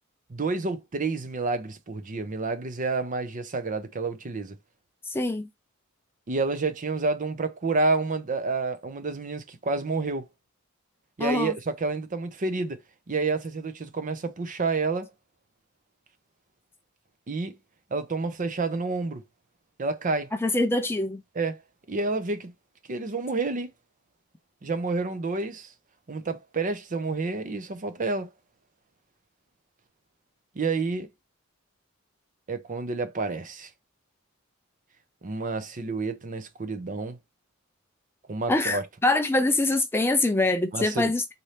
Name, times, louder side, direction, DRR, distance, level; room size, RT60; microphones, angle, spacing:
voice 1, 0.3-4.6 6.3-10.3 11.2-12.8 13.1-15.1 17.3-17.6 17.9-19.2 19.8-20.3 21.3-21.6 21.9-22.5 22.9-23.7 24.6-25.7 26.1-28.3 30.6-31.1 32.5-33.7 35.2-37.2 38.3-38.9 40.7-41.1, right 3 dB, 40° right, 0.6 m, -29 dB
voice 2, 5.1-5.5 11.2-11.5 20.4-21.2 38.5-41.3, left 2 dB, 10° left, 0.4 m, -24 dB
4.2 x 2.7 x 3.2 m
head